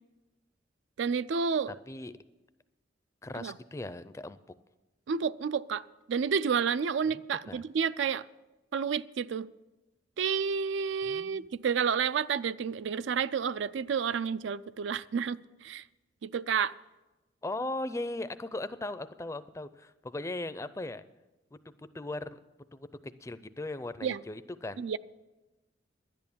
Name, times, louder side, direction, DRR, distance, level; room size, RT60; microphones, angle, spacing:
voice 1, 1.0-1.7 3.3-3.5 5.1-8.3 8.7-9.5 10.2-15.8 16.2-16.8 24.0-24.2 24.8-25.0, right 6 dB, 75° right, 17 dB, 0.4 m, -30 dB
voice 2, 1.7-2.1 3.2-4.4 7.0-7.2 7.5-7.6 11.0-11.5 17.4-21.0 21.5-22.4 22.7-24.8, left 2 dB, 15° left, 13 dB, 0.4 m, -38 dB
11.0 x 10.5 x 7.0 m, 1.1 s
head